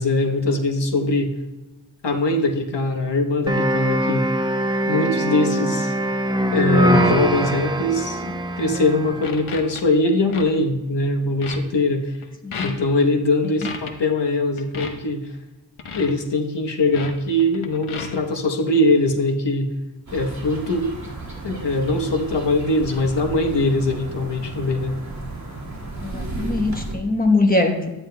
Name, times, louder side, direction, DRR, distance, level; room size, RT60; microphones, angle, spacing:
voice 1, 0.0-1.3 2.0-4.3 4.9-5.9 6.5-12.2 12.6-15.3 15.9-19.7 20.1-20.9 21.4-25.0, left 2 dB, 60° left, 3 dB, 1.1 m, -21 dB
sound 1, 3.5-9.4, equal, 10° right, 0.5 m, -22 dB
sound 2, 8.6-8.9 9.2-9.8 10.3-10.4 10.8-11.1 11.4-11.6 12.2-12.3 12.5-12.9 13.6-13.9 14.6-14.9 15.8-16.1 16.9-17.1 17.4-18.2, left 5 dB, 90° left, 1.0 m, -33 dB
voice 2, 12.4-12.8 26.0-27.9, left 2 dB, 20° left, 3 dB, 1.1 m, -21 dB
sound 3, 20.1-27.0, right 2 dB, 35° right, 2.4 m, -33 dB
11.5 x 9.5 x 2.2 m, 1.1 s
wide cardioid pair, 95°, 48 cm